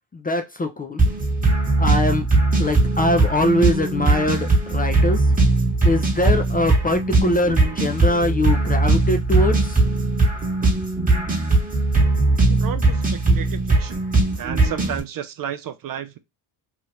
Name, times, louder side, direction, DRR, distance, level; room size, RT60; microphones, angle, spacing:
voice 1, 0.2-1.0 1.8-2.3 2.6-5.2 5.8-9.6, left 1 dB, 20° left, 0.4 m, -22 dB
sound 1, 1.0-15.0, right 2 dB, 15° right, 1.1 m, -19 dB
voice 2, 12.5-14.0 14.4-16.2, right 9 dB, 45° right, 0.4 m, -32 dB
2.9 x 2.4 x 3.1 m
cardioid pair, 90°, 50 cm